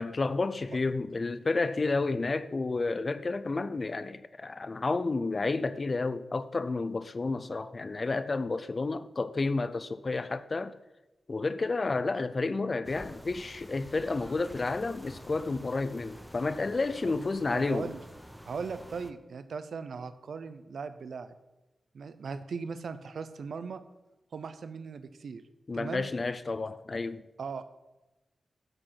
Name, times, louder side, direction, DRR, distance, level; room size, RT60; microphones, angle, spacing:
voice 1, 0.0-10.7 11.3-17.9 25.7-27.2, left 3 dB, 40° left, 0.5 m, -31 dB
sound 1, 12.8-19.1, equal, ahead, 0.7 m, -48 dB
voice 2, 17.5-18.0 18.5-21.4 21.9-23.8 24.3-25.4 25.7-26.1 27.4-27.6, right 5 dB, 75° right, 0.7 m, -38 dB
13.0 x 5.1 x 5.7 m
wide cardioid pair, 85°, 0 cm